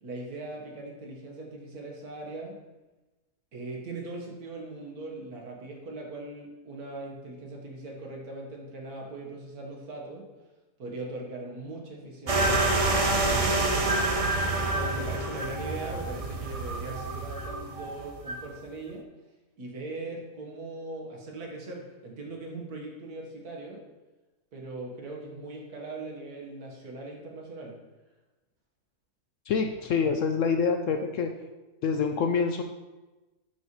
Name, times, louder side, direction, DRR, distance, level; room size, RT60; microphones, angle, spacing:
voice 1, 0.0-2.6 3.5-10.3 10.8-13.9 14.5-19.1 19.6-23.8 24.5-27.8, right 2 dB, 70° right, -1 dB, 1.9 m, -40 dB
sound 1, 12.3-18.5, right 2 dB, 45° right, 0.4 m, -27 dB
voice 2, 29.5-31.3 31.8-32.6, left 5 dB, 70° left, 5 dB, 0.8 m, -26 dB
11.0 x 5.8 x 3.1 m, 1.1 s
omnidirectional pair, 1.7 m